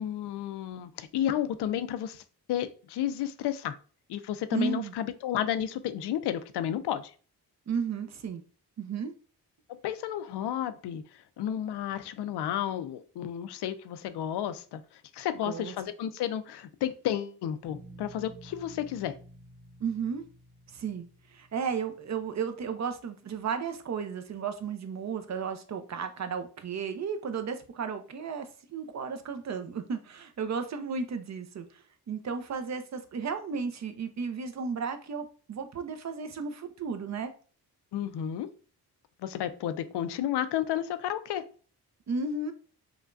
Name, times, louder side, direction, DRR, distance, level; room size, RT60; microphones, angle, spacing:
voice 1, 0.0-2.2 2.5-3.8 4.1-7.1 9.8-19.1 37.9-38.5 39.2-41.4, left 10 dB, 90° left, 0.5 m, -32 dB
voice 2, 4.5-4.9 7.7-8.4 8.8-9.1 15.4-15.7 19.8-20.2 20.7-21.0 21.3-37.3 42.1-42.5, right 5 dB, 45° right, 0.5 m, -34 dB
sound 1, 17.6-22.5, right 1 dB, 5° left, 0.8 m, -52 dB
4.8 x 2.2 x 2.5 m
cardioid pair, 100°, 39 cm